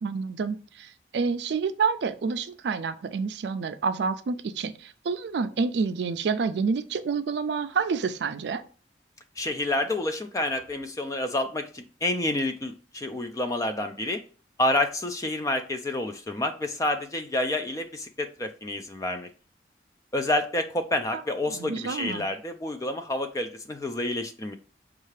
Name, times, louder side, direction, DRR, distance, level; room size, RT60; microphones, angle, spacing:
voice 1, 0.0-8.6 21.5-22.3, right 5 dB, 70° right, 11 dB, 0.4 m, -28 dB
voice 2, 9.4-14.2 14.6-19.3 20.1-24.6, left 1 dB, 20° left, 7 dB, 0.3 m, -29 dB
5.4 x 2.4 x 3.2 m, 0.38 s
head